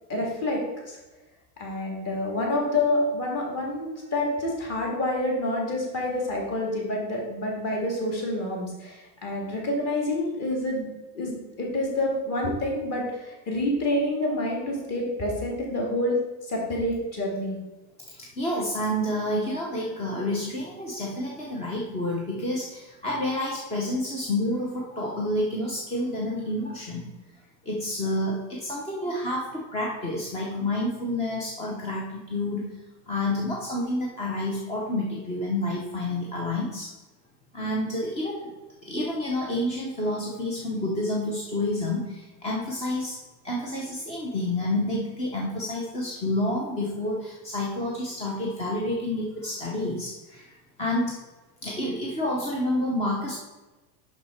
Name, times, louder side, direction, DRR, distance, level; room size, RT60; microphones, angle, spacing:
voice 1, 0.1-1.0 1.6-16.2 16.5-17.6, left 1 dB, 30° left, -1 dB, 2.0 m, -28 dB
voice 2, 18.1-27.1 27.7-32.7 33.1-36.9 37.5-38.5 38.8-43.2 43.4-51.2 51.6-53.4, left 1 dB, 15° left, -2 dB, 0.5 m, -29 dB
6.0 x 5.7 x 4.2 m, 1.1 s
supercardioid pair, 155°, 50 cm